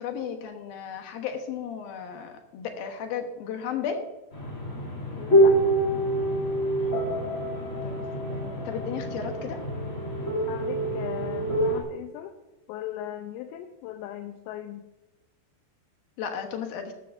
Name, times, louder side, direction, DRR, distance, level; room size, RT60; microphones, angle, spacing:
voice 1, 0.0-4.0 7.8-9.6 16.2-16.9, left 7 dB, 70° left, 5 dB, 2.6 m, -34 dB
sound 1, 4.3-11.8, right 1 dB, 20° left, 2.5 m, -26 dB
voice 2, 5.2-5.6 10.5-12.3 12.7-14.9, left 11 dB, 90° left, 5 dB, 3.0 m, -38 dB
15.0 x 12.0 x 2.6 m, 1.0 s
omnidirectional pair, 5.0 m